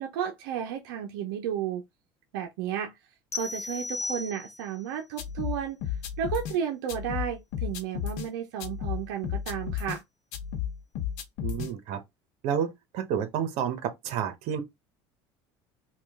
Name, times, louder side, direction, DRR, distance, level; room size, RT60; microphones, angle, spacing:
voice 1, 0.0-1.8 2.3-2.9 3.3-5.8 6.2-10.0, right 9 dB, 90° right, 0.7 m, -33 dB
sound 1, 3.3-4.8, left 3 dB, 25° left, 0.9 m, -35 dB
sound 2, 5.2-6.6 6.9-8.3 8.6-10.0 10.3-11.7, left 9 dB, 75° left, 0.8 m, -33 dB
voice 2, 11.4-12.0 12.4-14.6, right 8 dB, 65° right, 1.0 m, -30 dB
3.0 x 2.4 x 3.5 m
supercardioid pair, 115°, 12 cm